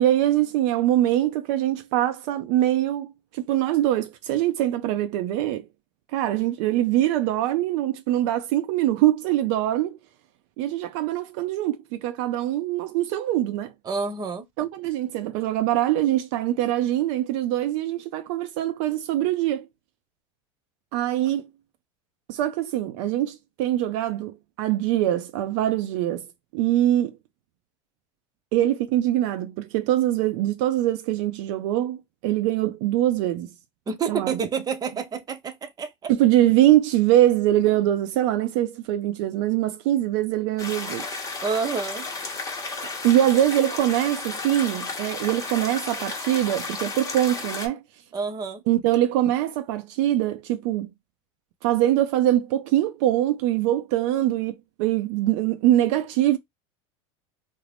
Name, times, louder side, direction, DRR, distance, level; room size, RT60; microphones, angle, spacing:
voice 1, 0.0-5.7 6.1-10.0 10.6-13.7 14.6-19.7 20.9-21.5 22.3-26.3 26.5-27.2 28.5-33.5 34.1-34.4 36.1-41.1 43.0-47.8 48.7-50.9 51.6-56.4, right 13 dB, 65° right, 0.4 m, -23 dB
voice 2, 13.9-14.5 33.9-36.1 41.4-42.1 48.1-48.6, right 5 dB, 25° right, 0.6 m, -28 dB
sound 1, 40.6-47.7, left 3 dB, 20° left, 0.9 m, -33 dB
2.5 x 2.0 x 3.2 m
supercardioid pair, 110°, 16 cm